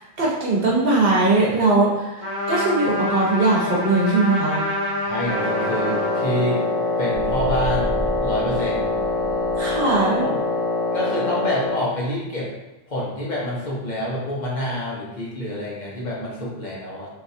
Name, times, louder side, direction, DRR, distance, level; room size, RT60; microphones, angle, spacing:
voice 1, 0.2-4.6 9.6-10.3, right 2 dB, 65° right, -4 dB, 1.0 m, -20 dB
Trumpet, 2.2-6.8, left 1 dB, 30° left, 1.3 m, -27 dB
voice 2, 5.0-6.6 7.0-9.0 10.1-10.4 10.9-12.5 12.9-17.1, equal, 50° left, -6 dB, 0.9 m, -27 dB
Wind instrument woodwind instrument, 5.3-11.9, left 2 dB, 5° left, 0.7 m, -24 dB
sound 1, 7.1-10.2, equal, 45° right, 0.6 m, -32 dB
3.5 x 2.8 x 2.6 m, 1.0 s
omnidirectional pair, 1.1 m